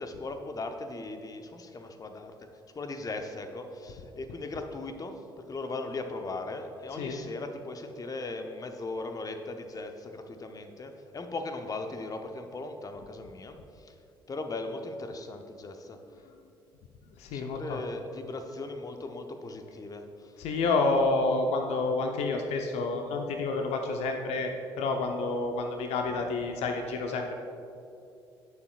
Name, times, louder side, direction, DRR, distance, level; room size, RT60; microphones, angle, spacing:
voice 1, 0.0-2.4 2.7-5.2 5.5-13.9 14.3-16.0 17.3-20.4, left 2 dB, 30° left, 6 dB, 0.9 m, -38 dB
voice 2, 17.2-17.8 20.4-27.3, left 3 dB, 60° left, 4 dB, 0.8 m, -29 dB
17.5 x 6.9 x 2.4 m, 2.6 s
figure-of-eight pair, 45°, 12 cm